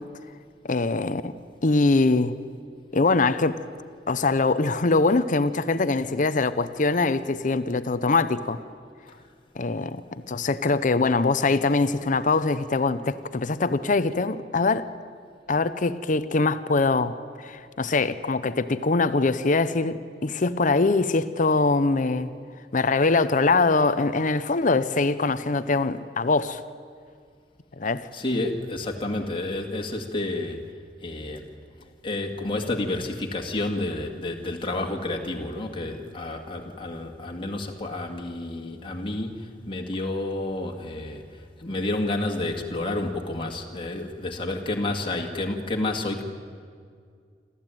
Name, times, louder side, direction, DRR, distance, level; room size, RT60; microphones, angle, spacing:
voice 1, 0.7-1.3 1.6-2.3 2.9-3.6 4.1-8.6 9.6-10.0 10.3-14.9 15.5-22.3 22.7-26.6 27.8-28.1, left 3 dB, 45° left, 0.7 m, -23 dB
voice 2, 28.1-30.6 31.0-31.5 32.0-46.2, left 2 dB, 30° left, 2.0 m, -30 dB
27.0 x 14.0 x 9.1 m
head